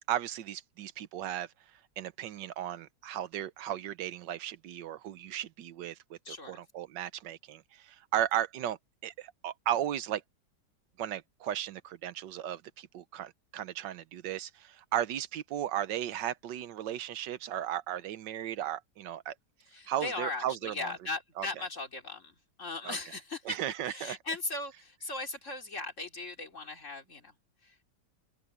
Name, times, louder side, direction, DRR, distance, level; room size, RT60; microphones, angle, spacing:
voice 1, 0.0-1.5 2.0-10.2 11.0-19.3 19.9-20.9 21.4-21.5 22.8-23.0 23.4-24.2, right 11 dB, 85° right, 1.5 m, -35 dB
voice 2, 6.2-6.6 19.7-23.6 23.8-27.3 27.6-27.8, left 3 dB, 45° left, 3.2 m, -38 dB
open air
omnidirectional pair, 1.9 m